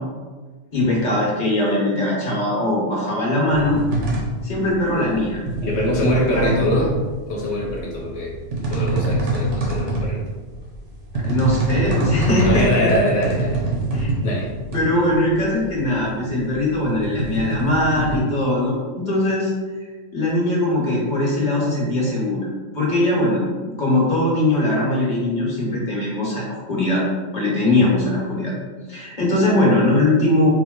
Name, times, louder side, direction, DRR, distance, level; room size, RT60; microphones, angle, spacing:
voice 1, 0.7-3.8 4.4-5.4 6.1-6.5 11.1-12.9 13.9-14.1 14.7-19.5 20.1-22.5 22.7-27.0 27.3-28.5 28.9-30.5, left 1 dB, 35° left, -5 dB, 1.2 m, -20 dB
sound 1, 3.5-18.2, right 2 dB, 65° right, 1.1 m, -25 dB
voice 2, 5.6-6.9 7.3-8.3 8.7-10.2 12.4-13.7 14.2-14.5 27.7-27.9, left 1 dB, 60° left, -3 dB, 1.1 m, -23 dB
4.4 x 2.1 x 3.7 m, 1.4 s
omnidirectional pair, 1.4 m